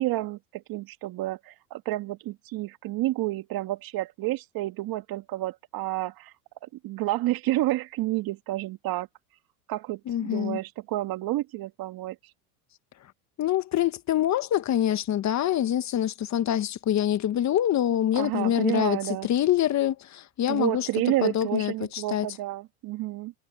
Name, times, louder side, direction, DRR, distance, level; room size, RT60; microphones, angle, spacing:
voice 1, 0.0-6.3 6.6-9.1 9.7-12.2 18.1-19.3 20.5-23.3, right 17 dB, 50° right, 2.0 m, -30 dB
voice 2, 10.1-10.6 13.4-19.0 19.2-20.9 21.2-22.3, left 11 dB, 35° left, 1.5 m, -25 dB
supercardioid pair, 105°, 45 cm